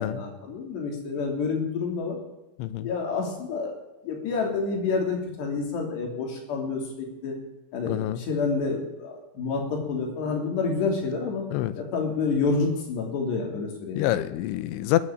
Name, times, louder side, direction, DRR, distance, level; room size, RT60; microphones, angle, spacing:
voice 1, 0.0-2.2 2.8-3.7 4.0-7.4 7.7-11.5 11.8-14.2, left 4 dB, 65° left, 1 dB, 5.1 m, -28 dB
voice 2, 2.6-2.9 7.9-8.2 11.5-11.8 14.0-15.0, left 15 dB, 90° left, 14 dB, 3.2 m, -26 dB
20.5 x 8.9 x 7.5 m, 1.0 s
omnidirectional pair, 5.4 m